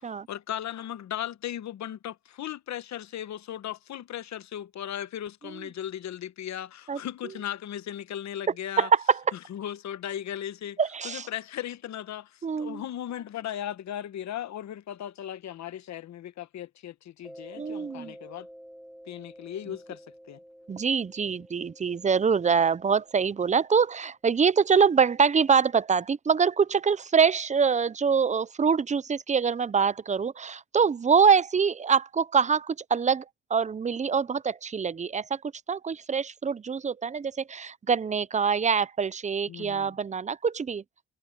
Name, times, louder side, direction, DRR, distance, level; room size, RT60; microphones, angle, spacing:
voice 1, 0.0-8.9 9.5-10.8 11.0-18.5 19.1-20.0 20.3-20.4 39.5-39.9, left 11 dB, 65° left, 1.1 m, -37 dB
voice 2, 8.8-9.2 10.8-11.3 12.4-12.8 17.6-18.1 20.7-33.2 33.5-35.4 35.7-40.8, right 6 dB, 25° right, 0.6 m, -24 dB
Mallet percussion, 17.2-23.6, equal, ahead, 4.4 m, -50 dB
cardioid pair, 90°, 30 cm